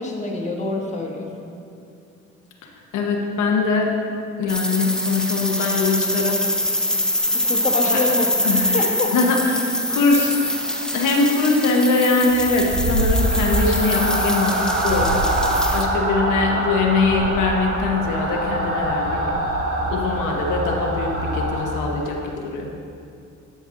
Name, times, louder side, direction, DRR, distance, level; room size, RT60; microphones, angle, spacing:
voice 1, 0.0-1.5 7.3-9.1, left 2 dB, 25° left, 0 dB, 1.3 m, -26 dB
voice 2, 2.9-3.9 4.4-6.4 7.8-8.0 8.4-8.8 9.1-10.4 10.9-14.6 14.8-19.2 19.9-22.7, left 3 dB, 85° left, 0 dB, 1.0 m, -22 dB
sound 1, 4.5-15.8, left 1 dB, ahead, 0.7 m, -24 dB
sound 2, 12.2-22.2, right 1 dB, 50° right, 1.4 m, -24 dB
11.5 x 5.4 x 3.7 m, 2.5 s
cardioid pair, 90°, 30 cm